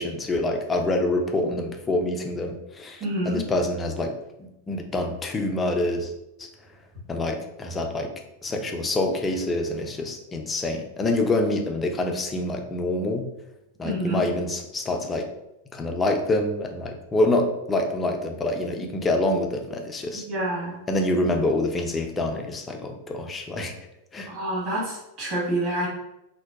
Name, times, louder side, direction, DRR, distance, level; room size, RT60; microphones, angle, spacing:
voice 1, 0.0-6.1 6.4-6.5 7.1-8.1 8.4-13.3 13.8-15.3 15.7-20.2 20.9-23.7 24.1-24.3, left 2 dB, 15° left, 3 dB, 0.3 m, -26 dB
voice 2, 3.0-3.4 13.8-14.2 20.1-20.8 24.3-25.9, right 1 dB, 40° right, -5 dB, 1.1 m, -28 dB
2.6 x 2.1 x 2.2 m, 0.88 s
figure-of-eight pair, 90°, 0 cm